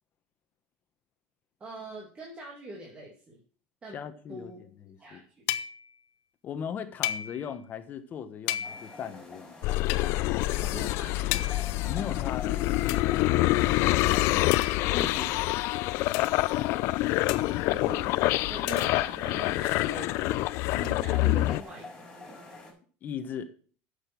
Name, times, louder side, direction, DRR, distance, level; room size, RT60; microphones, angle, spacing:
voice 1, 1.6-3.4 3.8-4.0 4.3-4.6 5.0-5.4 10.6-11.3 13.6-13.9 17.7-18.1 18.5-21.9, right 2 dB, 25° right, 2.4 m, -43 dB
voice 2, 3.9-5.2 6.4-9.5 11.8-12.8 14.9-15.4 21.2-21.3 23.0-23.5, left 7 dB, 40° left, 1.2 m, -38 dB
sound 1, 5.5-6.0 7.0-7.6 8.5-9.1 9.9-10.1 11.3-11.8 12.9-13.1 14.5-15.1 16.1-16.4 17.3-17.7 18.7-19.2 20.8-20.9, left 12 dB, 80° left, 0.7 m, -34 dB
sound 2, 8.6-22.7, left 2 dB, 10° left, 5.0 m, -47 dB
sound 3, 9.6-21.6, left 19 dB, 60° left, 0.3 m, -26 dB
8.9 x 6.7 x 6.0 m
cardioid pair, 135°, 5 cm